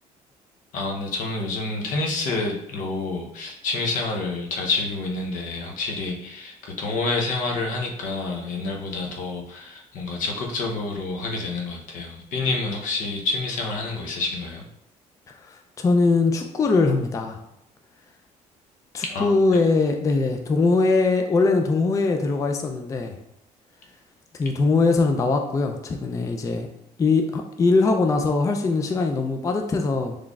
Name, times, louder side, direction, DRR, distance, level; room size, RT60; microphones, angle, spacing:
voice 1, 0.7-14.6 19.0-19.6, left 3 dB, 70° left, 1 dB, 0.7 m, -28 dB
voice 2, 15.3-17.4 18.9-23.2 24.4-26.7 27.0-30.2, left 3 dB, 25° left, 4 dB, 0.4 m, -21 dB
3.8 x 3.1 x 2.3 m, 0.82 s
cardioid pair, 95°, 14 cm